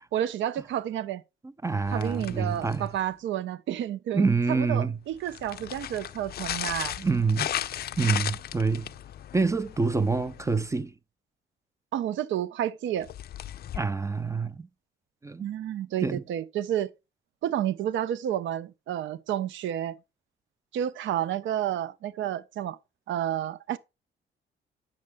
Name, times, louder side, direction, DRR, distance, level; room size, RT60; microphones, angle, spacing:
voice 1, 0.1-1.2 1.9-7.0 11.9-13.1 15.4-16.9 17.4-20.0 20.7-22.8 23.1-23.8, right 11 dB, 70° right, 0.5 m, -30 dB
voice 2, 1.6-2.9 4.1-5.0 7.0-7.5 8.0-8.9 9.3-10.9 13.7-14.7 15.2-15.5 16.0-16.2, right 4 dB, 15° right, 0.4 m, -26 dB
sound 1, 1.9-3.1 5.1-10.7 13.0-13.8, left 11 dB, 50° left, 0.4 m, -36 dB
8.5 x 6.5 x 3.4 m
cardioid pair, 90°, 20 cm